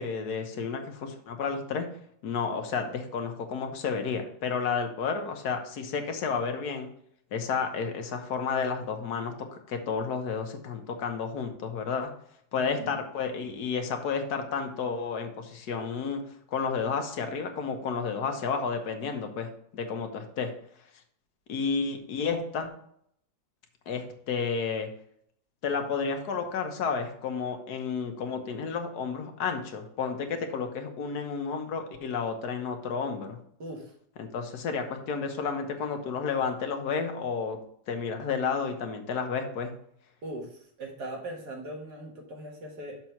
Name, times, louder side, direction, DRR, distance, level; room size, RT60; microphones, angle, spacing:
voice 1, 0.0-1.9 2.2-6.9 7.3-12.1 12.5-16.2 16.5-20.5 21.5-22.7 23.9-24.9 25.6-33.4 34.2-37.6 37.9-39.7, left 5 dB, 65° left, 5 dB, 1.5 m, -31 dB
voice 2, 12.6-13.0 33.6-33.9 40.2-43.0, right 1 dB, 65° right, 0 dB, 2.1 m, -40 dB
6.8 x 4.5 x 5.8 m, 0.68 s
omnidirectional pair, 1.9 m